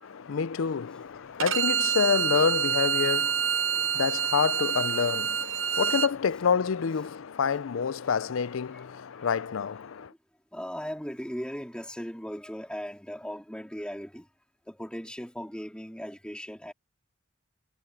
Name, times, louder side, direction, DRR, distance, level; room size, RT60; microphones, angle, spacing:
voice 1, 0.0-10.1, left 6 dB, 80° left, 0.5 m, -28 dB
Bowed string instrument, 1.4-6.1, right 8 dB, 75° right, 0.9 m, -27 dB
voice 2, 10.5-14.3 14.7-16.7, equal, 5° left, 3.0 m, -38 dB
head